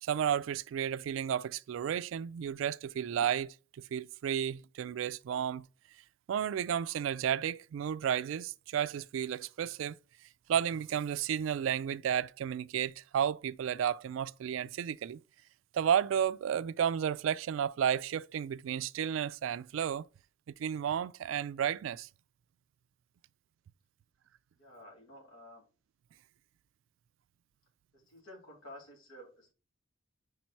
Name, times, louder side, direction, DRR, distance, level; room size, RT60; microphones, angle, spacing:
voice 1, 0.0-5.7 6.3-9.9 10.5-15.2 15.7-20.0 20.6-22.1, right 9 dB, 75° right, 0.3 m, -32 dB
voice 2, 24.5-25.6 27.9-29.5, left 1 dB, 75° left, 3.3 m, -52 dB
5.2 x 4.5 x 4.1 m
head